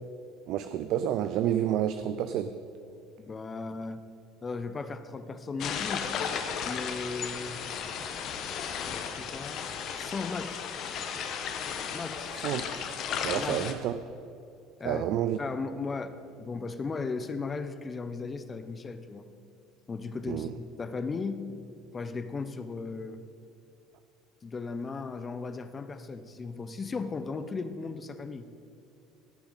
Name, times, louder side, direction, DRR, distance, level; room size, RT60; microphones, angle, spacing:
voice 1, 0.5-2.5 12.3-12.6 13.2-13.9 14.9-15.4 20.3-20.5, right 11 dB, 65° right, 10 dB, 0.4 m, -29 dB
voice 2, 3.2-4.0 4.4-6.1 6.6-7.6 9.2-9.6 10.0-10.6 11.9-12.3 13.3-13.7 14.8-15.1 15.4-19.3 19.9-21.4 21.9-23.2 24.4-28.5, left 4 dB, 25° left, 10 dB, 0.8 m, -36 dB
sound 1, 5.6-13.7, left 7 dB, 55° left, 1.0 m, -35 dB
16.5 x 6.9 x 4.0 m, 2.5 s
supercardioid pair, 90°, 0 cm